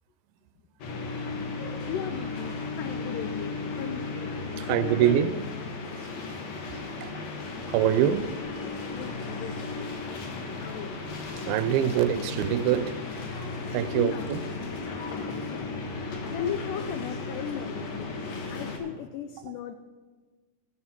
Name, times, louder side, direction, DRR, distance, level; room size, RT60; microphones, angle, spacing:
sound 1, 0.8-18.8, left 3 dB, 60° left, 2.1 m, -35 dB
voice 1, 1.9-4.1 4.6-5.5 8.9-11.0 13.9-14.3 15.3-15.7 16.3-18.1 18.5-19.8, left 8 dB, 90° left, 1.8 m, -36 dB
voice 2, 4.6-5.4 7.0-7.1 7.7-8.3 11.5-13.0 13.7-14.5, right 11 dB, 85° right, 2.4 m, -24 dB
14.0 x 9.4 x 4.3 m
omnidirectional pair, 4.3 m